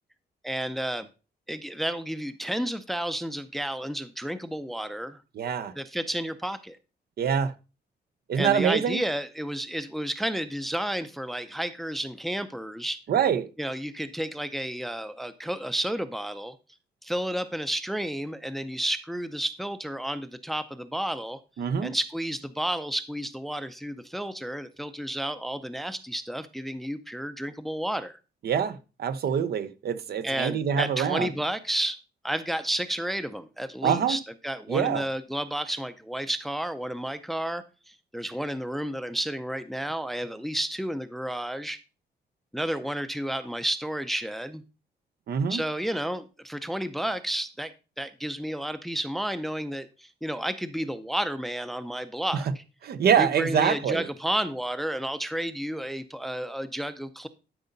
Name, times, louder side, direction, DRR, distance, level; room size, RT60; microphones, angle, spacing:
voice 1, 0.4-1.1 1.5-5.2 5.8-6.8 8.4-13.0 13.6-16.6 17.0-21.4 21.8-28.2 30.2-32.0 32.2-41.8 42.5-44.6 45.5-52.6 53.2-57.3, right 1 dB, ahead, 0.5 m, -31 dB
voice 2, 5.3-5.7 7.2-7.5 8.3-9.0 13.1-13.5 21.6-21.9 28.4-31.3 33.8-34.2 34.7-35.0 45.3-45.6 52.3-52.4 52.8-54.1, right 8 dB, 65° right, 0.8 m, -25 dB
12.0 x 5.5 x 3.9 m
wide cardioid pair, 160°, 17 cm